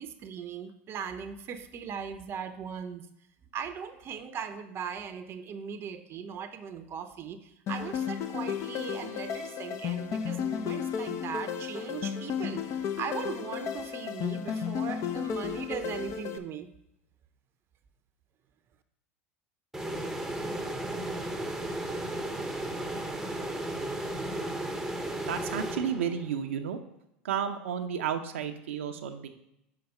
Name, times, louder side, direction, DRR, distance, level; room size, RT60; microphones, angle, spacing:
voice 1, 0.0-3.1 3.5-16.7, right 7 dB, 40° right, 8 dB, 0.6 m, -39 dB
sound 1, 7.7-16.4, left 8 dB, 45° left, 0.6 m, -33 dB
sound 2, 19.7-26.4, right 1 dB, 5° right, 0.8 m, -34 dB
voice 2, 25.3-26.8 27.2-29.3, right 8 dB, 85° right, 5 dB, 0.6 m, -32 dB
5.8 x 4.7 x 5.2 m, 0.82 s
hypercardioid pair, 95°, 7 cm